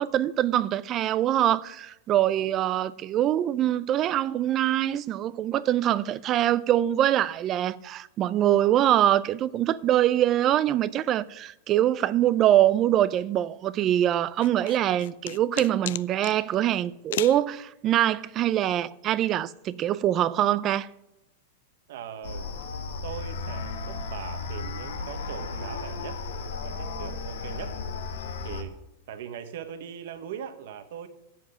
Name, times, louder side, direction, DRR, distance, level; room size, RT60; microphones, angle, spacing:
voice 1, 0.0-20.9, right 12 dB, 30° right, 0.4 m, -24 dB
sound 1, 14.4-16.4 17.1-17.4, left 13 dB, 70° left, 0.4 m, -34 dB
voice 2, 14.6-15.0 21.9-22.4 23.0-26.2 26.5-27.8 28.4-28.8 29.1-31.1, right 8 dB, 65° right, 1.2 m, -40 dB
sound 2, 22.2-28.6, left 4 dB, 85° left, 1.6 m, -34 dB
7.9 x 7.3 x 8.5 m
supercardioid pair, 155°, 0 cm